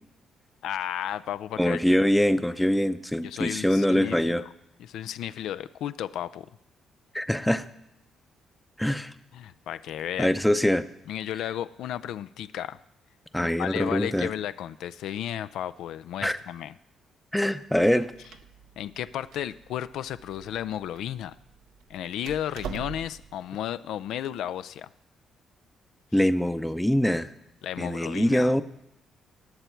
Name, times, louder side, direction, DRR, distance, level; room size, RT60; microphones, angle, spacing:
voice 1, 0.6-2.0 3.2-4.5 4.8-6.5 9.3-10.3 11.1-12.8 13.4-16.7 18.8-21.3 21.9-24.9 26.2-26.3 27.6-28.5, left 11 dB, 80° left, 14 dB, 0.3 m, -33 dB
voice 2, 1.6-4.4 7.1-7.7 8.8-9.1 10.2-10.8 13.3-14.3 16.2-16.4 17.3-18.1 26.1-27.3 27.8-28.6, equal, 5° left, 12 dB, 0.6 m, -23 dB
Door, 18.0-23.4, right 8 dB, 85° right, 0.7 m, -44 dB
19.0 x 7.0 x 4.5 m, 0.83 s
cardioid pair, 90°, 0 cm